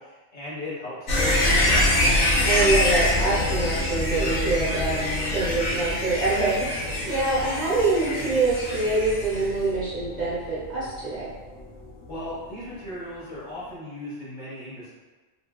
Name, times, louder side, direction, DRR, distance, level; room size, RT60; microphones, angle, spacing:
voice 1, 0.0-1.9 5.2-5.6 12.1-14.9, left 1 dB, 45° left, -9 dB, 0.9 m, -37 dB
sound 1, 1.1-11.9 12.2-12.3, left 1 dB, 85° left, 1.0 m, -25 dB
voice 2, 2.4-11.3, right 3 dB, 45° right, -9 dB, 0.7 m, -25 dB
2.8 x 2.6 x 2.2 m, 1.3 s
omnidirectional pair, 1.2 m